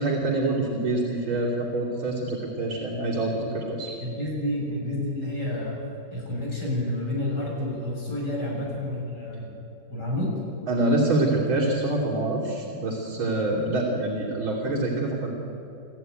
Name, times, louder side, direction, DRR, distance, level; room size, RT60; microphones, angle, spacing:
voice 1, 0.0-3.9 8.5-8.6 10.7-15.3, right 2 dB, 80° right, -6 dB, 3.9 m, -26 dB
voice 2, 4.0-5.8 6.1-9.5 9.9-10.3, left 1 dB, 55° left, -3 dB, 7.7 m, -29 dB
29.5 x 14.0 x 9.3 m, 2.9 s
omnidirectional pair, 2.2 m